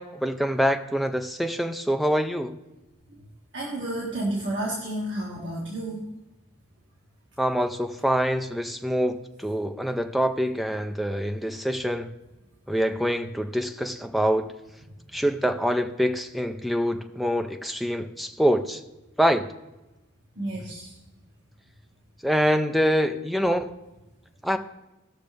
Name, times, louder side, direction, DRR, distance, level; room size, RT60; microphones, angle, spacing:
voice 1, 0.0-2.5 7.4-12.1 12.7-14.5 15.1-18.8 19.2-19.5 22.2-23.7 24.4-24.6, equal, ahead, 5 dB, 0.6 m, -25 dB
voice 2, 3.5-6.0 20.4-20.9, right 1 dB, 60° right, -4 dB, 2.0 m, -31 dB
18.5 x 6.6 x 3.4 m, 1.0 s
head